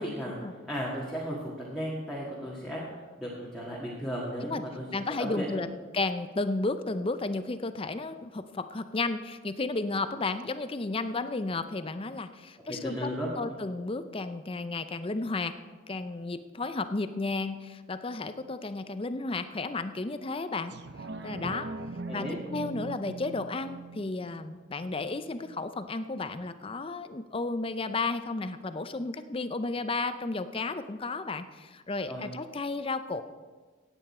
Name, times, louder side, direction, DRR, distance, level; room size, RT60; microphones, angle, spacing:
voice 1, 0.0-0.4 0.7-2.8 3.2-4.9 5.2-5.7 12.7-13.3 22.1-22.4 32.1-32.3, equal, ahead, -6 dB, 1.7 m, -35 dB
voice 2, 4.9-5.7 5.9-13.1 13.4-15.5 15.9-20.7 21.2-21.7 22.1-33.2, left 3 dB, 25° left, 11 dB, 0.5 m, -33 dB
sound 1, 20.7-25.7 26.2-26.3, right 3 dB, 55° right, 0.6 m, -41 dB
16.0 x 9.1 x 4.3 m, 1.4 s
head